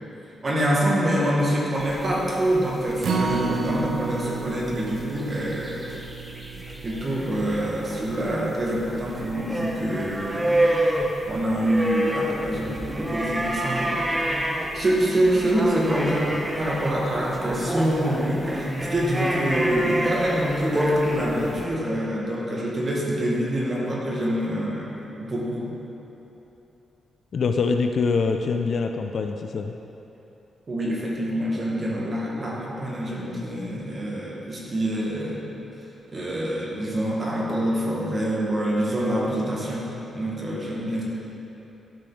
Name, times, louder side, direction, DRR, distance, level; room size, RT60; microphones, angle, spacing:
voice 1, 0.4-5.8 6.8-10.5 11.3-14.0 14.7-25.8 30.7-35.4 36.1-41.0, right 1 dB, 30° right, -4 dB, 1.4 m, -26 dB
sound 1, 1.8-21.6, equal, 10° right, 0.7 m, -28 dB
Acoustic guitar, 3.0-9.3 9.7-9.8 10.2-10.3, right 4 dB, 55° right, 0.7 m, -31 dB
voice 2, 27.3-29.7, left 4 dB, 45° left, 5 dB, 0.4 m, -24 dB
12.0 x 5.0 x 3.9 m, 3.0 s
wide cardioid pair, 160°, 0 cm